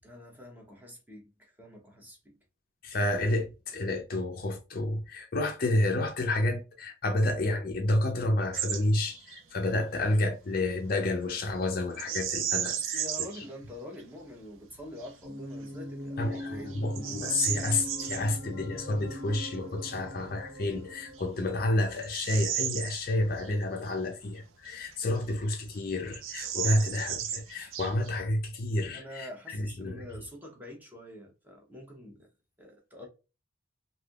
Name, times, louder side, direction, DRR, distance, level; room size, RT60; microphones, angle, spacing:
voice 1, 0.0-2.3 12.7-16.8 28.9-32.3 32.6-33.1, left 1 dB, 10° right, 0.9 m, -46 dB
voice 2, 2.8-13.0 16.2-30.0, left 1 dB, 45° left, 0.5 m, -30 dB
Bird vocalization bird call bird song, 8.5-8.8 9.1-9.4 11.9-13.4 14.0-14.1 14.7-15.1 15.7-15.8 16.3-18.2 20.3-20.4 21.1-23.5 23.9-24.0 24.7-25.5 25.7-25.8 26.1-28.2, right 10 dB, 85° right, 0.5 m, -34 dB
sound 1, 15.2-21.8, equal, 65° right, 1.2 m, -41 dB
3.3 x 2.7 x 2.3 m
head